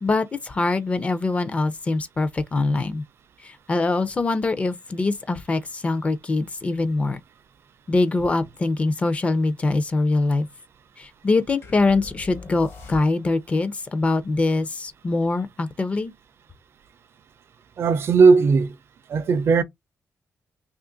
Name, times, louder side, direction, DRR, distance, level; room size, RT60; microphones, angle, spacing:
voice 1, 0.0-3.0 3.4-7.2 7.9-10.5 11.0-16.1, left 3 dB, 25° left, 0.4 m, -23 dB
sound 1, 11.6-13.5, left 4 dB, 45° left, 0.9 m, -41 dB
voice 2, 17.8-18.8 19.1-19.6, right 4 dB, 50° right, 0.4 m, -17 dB
2.9 x 2.4 x 3.7 m
wide cardioid pair, 180°, 6 cm